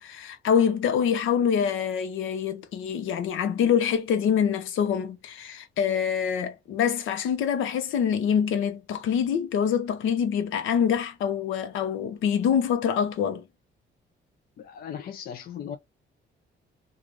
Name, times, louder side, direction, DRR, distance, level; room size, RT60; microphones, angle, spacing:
voice 1, 0.0-13.4, left 8 dB, 85° left, 0.8 m, -25 dB
voice 2, 14.6-15.8, left 8 dB, 50° left, 0.5 m, -37 dB
3.1 x 2.4 x 2.5 m
cardioid pair, 90°, 20 cm